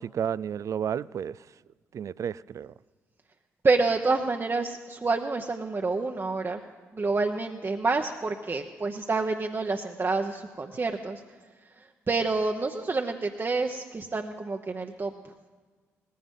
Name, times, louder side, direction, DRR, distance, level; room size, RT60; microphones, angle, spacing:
voice 1, 0.0-1.4 1.9-2.7, right 8 dB, 50° right, 0.3 m, -31 dB
voice 2, 3.6-6.6 6.9-11.2 11.8-15.5, right 3 dB, 35° right, 0.9 m, -28 dB
18.5 x 15.0 x 3.8 m
hypercardioid pair, 40°, 7 cm